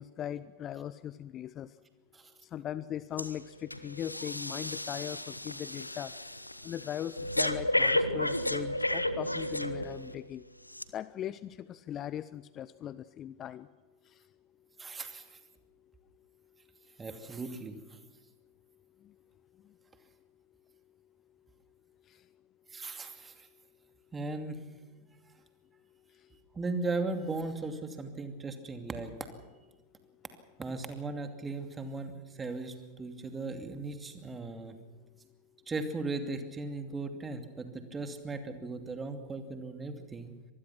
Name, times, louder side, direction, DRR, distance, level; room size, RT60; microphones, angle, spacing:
voice 1, 0.0-1.7 2.4-6.1 6.6-10.4 10.9-13.7 22.1-22.2, left 10 dB, 30° left, 16 dB, 0.7 m, -39 dB
Breathing, 3.2-3.4 3.7-10.1 10.7-10.8, left 1 dB, 85° left, 1.0 m, -32 dB
voice 2, 14.8-15.4 17.0-17.8 22.7-23.5 24.1-24.6 26.5-29.1 30.6-32.1 32.4-34.7 35.7-40.3, right 3 dB, 15° right, 7 dB, 2.6 m, -37 dB
25.0 x 20.0 x 6.0 m, 1.3 s
figure-of-eight pair, 90°, 0 cm